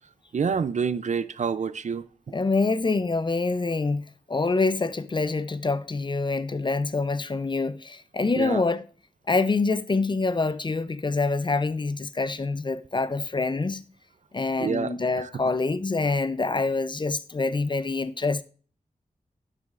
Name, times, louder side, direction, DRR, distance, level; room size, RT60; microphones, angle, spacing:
voice 1, 0.3-2.1 8.4-8.6 14.6-15.3, right 6 dB, 60° right, 0.5 m, -28 dB
voice 2, 2.3-8.8 9.3-13.8 14.3-18.4, left 3 dB, 35° left, 0.5 m, -26 dB
11.0 x 7.8 x 2.5 m
wide cardioid pair, 90°, 14 cm